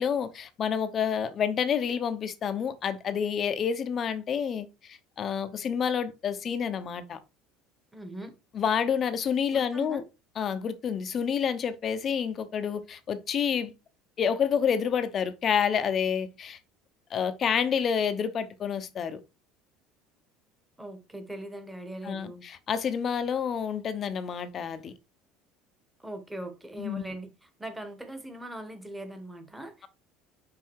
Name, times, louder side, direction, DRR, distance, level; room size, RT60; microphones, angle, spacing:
voice 1, 0.0-7.2 8.5-10.0 10.4-13.7 14.2-16.6 17.1-19.2 22.1-22.3 22.7-24.9 26.8-27.0, left 7 dB, 35° left, 0.9 m, -28 dB
voice 2, 7.9-8.3 9.5-10.0 20.8-22.4 26.0-29.9, right 1 dB, 5° right, 1.4 m, -40 dB
5.7 x 5.2 x 4.7 m
cardioid pair, 140°, 0 cm